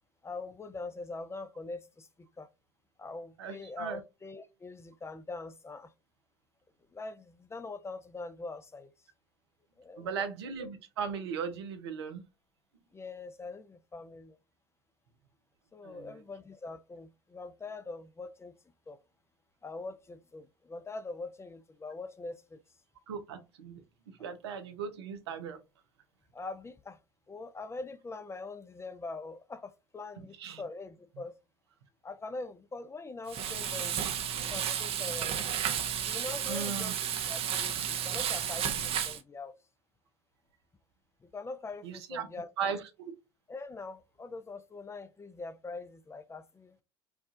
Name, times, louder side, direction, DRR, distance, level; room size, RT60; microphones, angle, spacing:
voice 1, 0.2-2.5 3.0-5.9 6.9-8.9 9.8-10.3 12.9-14.4 15.7-18.6 18.9-19.0 19.6-22.6 26.3-27.0 27.3-31.4 32.0-34.1 34.5-35.4 36.0-36.9 37.3-39.5 41.2-42.5 43.5-46.8, left 3 dB, 20° left, 0.5 m, -43 dB
voice 2, 3.4-4.0 10.0-12.2 15.8-16.2 23.1-25.6 30.4-30.6 36.5-36.9 41.8-42.3 42.6-43.1, right 6 dB, 80° right, 0.8 m, -37 dB
Frying (food), 33.3-39.2, right 9 dB, 45° right, 0.7 m, -32 dB
4.6 x 2.4 x 2.6 m
hypercardioid pair, 70°, 14 cm